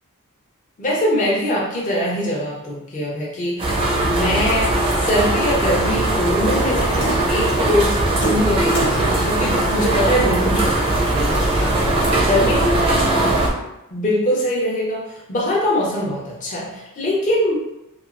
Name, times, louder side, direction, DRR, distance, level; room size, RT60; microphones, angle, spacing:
voice 1, 0.8-3.7 4.0-4.7 4.9-11.7 12.2-13.4 13.9-17.7, equal, 35° left, -5 dB, 0.5 m, -22 dB
sound 1, 3.6-13.5, right 2 dB, 25° right, 0.4 m, -20 dB
Water tap faucet / Sink (filling or washing), 6.5-12.6, equal, 85° left, 0.9 m, -31 dB
2.9 x 2.3 x 2.4 m, 0.91 s
head